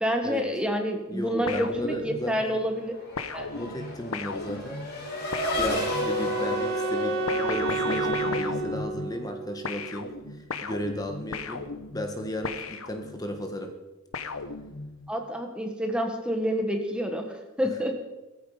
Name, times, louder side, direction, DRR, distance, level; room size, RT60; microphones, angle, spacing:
voice 1, 0.0-2.9 3.3-3.5 15.1-18.0, equal, 5° right, 3 dB, 1.6 m, -28 dB
voice 2, 1.1-2.6 3.5-4.8 5.6-13.7, equal, 15° left, 4 dB, 1.6 m, -34 dB
sound 1, 1.5-2.5 3.2-6.3 7.3-9.4 9.6-13.4 14.1-15.1, left 4 dB, 70° left, 1.0 m, -36 dB
Race car auto racing / Accelerating revving vroom, 2.5-8.6, left 2 dB, 45° left, 5.4 m, -33 dB
Wind instrument woodwind instrument, 5.0-10.1, right 4 dB, 70° right, 3.3 m, -31 dB
18.5 x 14.5 x 5.1 m, 1.1 s
head